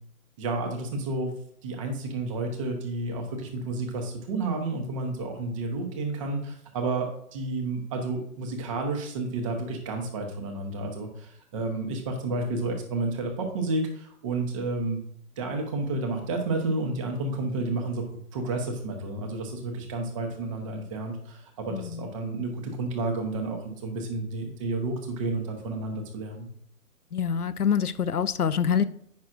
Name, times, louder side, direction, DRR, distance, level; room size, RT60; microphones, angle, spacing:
voice 1, 0.4-1.3 1.6-15.0 15.4-18.0 18.3-26.5, right 2 dB, 20° right, 2 dB, 1.0 m, -31 dB
voice 2, 21.7-22.1 27.1-28.8, left 7 dB, 90° left, 13 dB, 0.7 m, -25 dB
9.4 x 6.1 x 2.5 m, 0.66 s
figure-of-eight pair, 145°, 44 cm